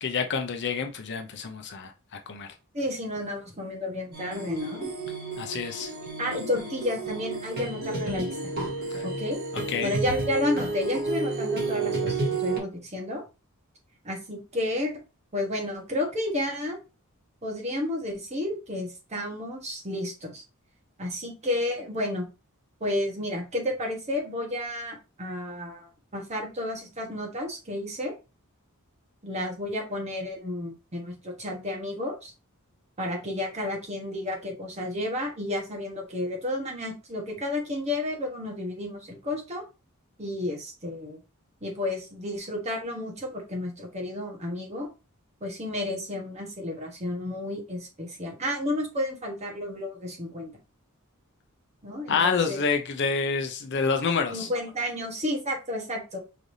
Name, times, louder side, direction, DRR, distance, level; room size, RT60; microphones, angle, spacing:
voice 1, 0.0-1.9 2.3-2.5 5.4-5.9 9.5-9.9 52.1-54.5, left 5 dB, 55° left, 0.6 m, -27 dB
voice 2, 2.7-4.9 6.2-8.5 9.0-9.4 9.8-13.2 14.0-14.9 15.3-16.8 17.4-20.4 21.0-22.3 22.8-28.1 29.2-32.3 33.0-39.6 40.2-41.2 41.6-44.9 45.4-50.5 51.8-52.6 54.3-56.2, left 1 dB, 30° right, 1.2 m, -31 dB
sound 1, 4.1-12.6, right 3 dB, 45° right, 1.4 m, -31 dB
5.0 x 3.3 x 2.7 m
head